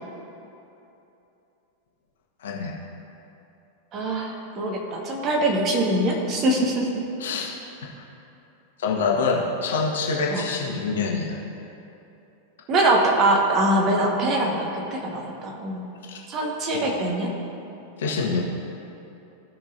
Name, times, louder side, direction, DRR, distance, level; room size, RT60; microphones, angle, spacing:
voice 1, 2.4-2.7 7.2-7.5 8.8-11.4 16.1-16.2 18.0-18.4, left 4 dB, 60° left, -2 dB, 1.4 m, -25 dB
voice 2, 3.9-7.0 10.3-10.5 12.7-15.8 16.3-17.3, right 1 dB, 35° right, 0 dB, 1.4 m, -23 dB
16.5 x 5.7 x 2.7 m, 2.9 s
figure-of-eight pair, 90°, 0 cm